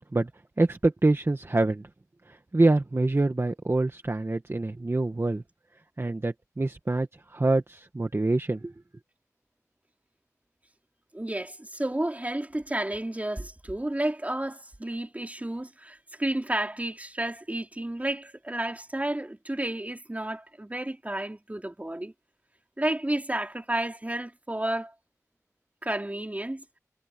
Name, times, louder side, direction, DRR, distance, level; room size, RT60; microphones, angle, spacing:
voice 1, 0.6-1.9 2.3-5.4 6.0-8.7, right 2 dB, 45° right, 1.5 m, -25 dB
voice 2, 11.1-22.1 22.8-24.9 25.8-26.6, right 1 dB, 25° right, 3.8 m, -31 dB
wide cardioid pair, 50°, 6 cm